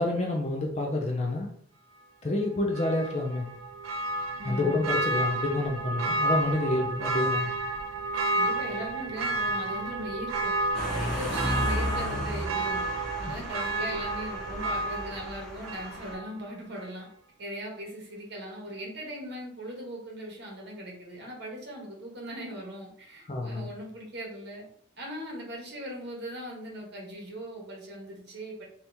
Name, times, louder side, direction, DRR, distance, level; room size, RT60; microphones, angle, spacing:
voice 1, 0.0-1.5 2.2-3.5 4.4-7.5 23.3-23.7, left 2 dB, 30° left, 1 dB, 0.4 m, -28 dB
Church bell, 2.7-16.4 16.8-16.9, right 2 dB, 85° right, 0.5 m, -31 dB
voice 2, 4.4-4.9 8.3-10.5 10.9-12.8 13.2-17.1 17.4-24.7 25.0-28.6, equal, 55° right, -2 dB, 1.1 m, -39 dB
sound 1, 10.7-16.1, left 1 dB, 5° left, 0.7 m, -34 dB
2.8 x 2.8 x 3.4 m, 0.63 s
head